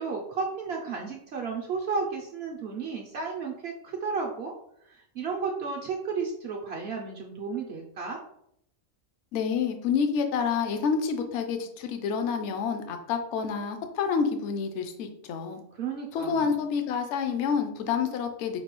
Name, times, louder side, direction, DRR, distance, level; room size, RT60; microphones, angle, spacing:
voice 1, 0.0-4.5 4.8-8.2 15.7-16.8, right 4 dB, 65° right, 0 dB, 0.7 m, -33 dB
voice 2, 9.3-15.6 16.1-18.6, left 6 dB, 65° left, 6 dB, 0.8 m, -28 dB
5.3 x 2.2 x 2.9 m, 0.74 s
omnidirectional pair, 1.4 m